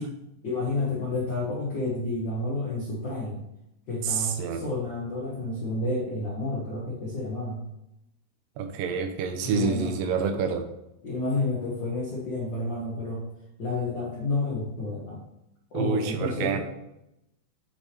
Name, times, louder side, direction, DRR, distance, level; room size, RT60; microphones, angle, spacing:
voice 1, 0.4-3.4 3.9-7.6 9.4-9.9 11.0-13.2 13.6-15.3 15.7-16.6, left 2 dB, 75° left, -4 dB, 1.0 m, -30 dB
voice 2, 4.0-4.6 8.6-10.7 15.7-16.6, right 6 dB, 90° right, 5 dB, 2.5 m, -27 dB
8.1 x 3.3 x 4.3 m, 0.86 s
omnidirectional pair, 3.9 m